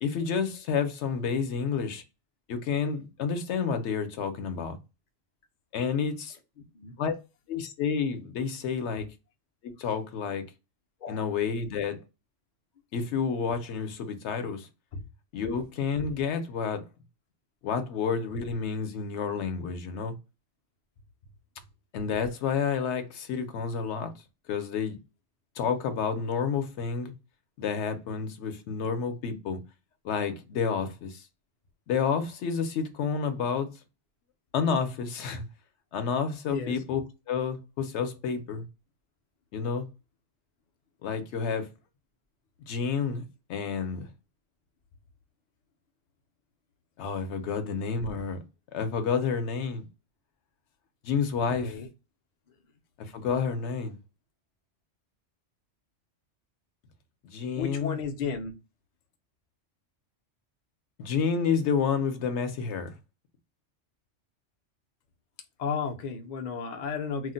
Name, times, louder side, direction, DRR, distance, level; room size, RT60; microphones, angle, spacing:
voice 1, 0.0-2.0 2.5-4.8 5.7-6.4 7.0-7.1 7.5-9.1 9.6-10.4 11.1-12.0 12.9-14.7 15.3-16.8 17.6-20.1 21.9-24.1 24.5-25.0 25.6-27.1 27.6-29.6 30.0-31.2 31.9-33.7 34.5-35.4 35.9-37.0 37.3-38.6 39.5-39.9 41.0-41.7 42.7-43.2 43.5-44.1 47.0-48.4 48.7-49.8 51.0-51.7 53.0-54.0 57.2-58.0 61.0-63.0, left 6 dB, 70° left, 0.8 m, -29 dB
voice 2, 51.4-51.9 57.5-58.5 65.6-67.3, left 5 dB, 55° left, 0.5 m, -33 dB
2.4 x 2.1 x 3.8 m
omnidirectional pair, 1.2 m